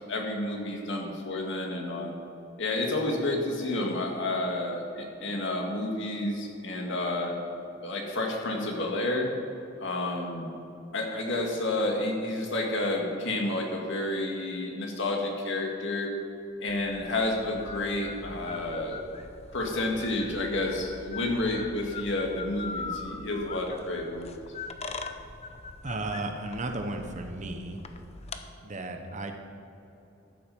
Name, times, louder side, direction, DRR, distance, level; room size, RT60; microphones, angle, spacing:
voice 1, 0.0-2.1 2.6-7.4 7.8-9.3 9.8-10.5 10.9-16.1 16.6-19.0 19.5-24.3, left 2 dB, 65° left, 0 dB, 1.9 m, -30 dB
sound 1, 16.7-28.4, left 4 dB, 35° left, 0.6 m, -42 dB
voice 2, 25.8-27.8 28.6-29.3, right 2 dB, 40° right, 5 dB, 1.0 m, -34 dB
13.5 x 7.6 x 5.4 m, 2.9 s
head